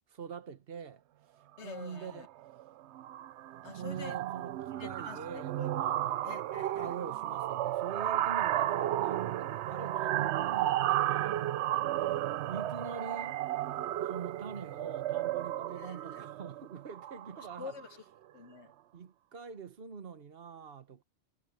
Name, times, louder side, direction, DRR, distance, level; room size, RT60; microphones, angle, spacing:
voice 1, 0.1-1.0 1.6-2.3 3.8-6.2 6.7-12.2 12.5-13.4 14.0-17.7 18.9-21.0, right 6 dB, 60° right, 1.4 m, -44 dB
voice 2, 1.6-2.3 3.6-4.2 4.8-5.8 6.2-7.0 11.4-11.5 15.7-16.2 17.6-18.0 18.3-18.7, left 5 dB, 90° left, 1.4 m, -47 dB
sound 1, 1.8-2.1 2.4-2.7 2.9-17.8, right 13 dB, 80° right, 0.9 m, -33 dB
omnidirectional pair, 1.1 m